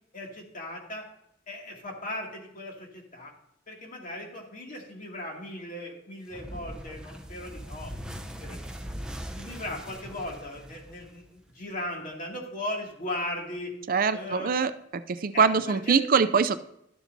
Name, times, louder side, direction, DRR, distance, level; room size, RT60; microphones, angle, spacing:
voice 1, 0.1-1.0 1.5-3.3 3.7-7.9 8.4-8.7 9.4-13.7 14.1-14.5 15.3-16.0, left 1 dB, 45° left, 0 dB, 2.4 m, -37 dB
sound 1, 6.3-11.4, equal, 5° right, 0.7 m, -40 dB
voice 2, 13.9-16.6, right 5 dB, 50° right, 12 dB, 0.5 m, -24 dB
12.5 x 7.1 x 2.7 m, 0.78 s
head